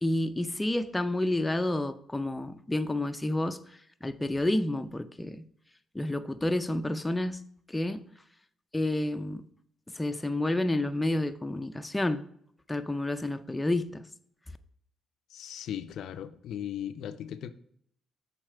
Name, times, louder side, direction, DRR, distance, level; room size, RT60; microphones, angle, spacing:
voice 1, 0.0-5.4 5.9-7.4 7.7-8.1 8.7-9.5 9.9-12.3 12.7-14.1, left 1 dB, 10° left, 0.4 m, -30 dB
voice 2, 15.3-17.5, left 10 dB, 75° left, 0.4 m, -37 dB
6.3 x 4.1 x 4.5 m
cardioid pair, 90°, 0 cm